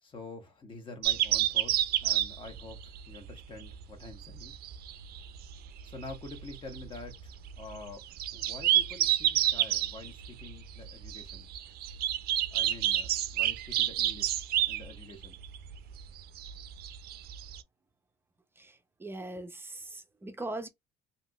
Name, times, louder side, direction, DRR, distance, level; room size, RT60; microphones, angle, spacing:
voice 1, 0.0-4.6 5.8-8.0 8.3-11.5 12.5-15.4, left 3 dB, 30° left, 1.2 m, -47 dB
sound 1, 1.0-17.6, right 12 dB, 65° right, 0.4 m, -30 dB
voice 2, 19.0-20.7, right 2 dB, 15° right, 0.6 m, -40 dB
3.5 x 2.7 x 2.3 m
cardioid pair, 110°, 17 cm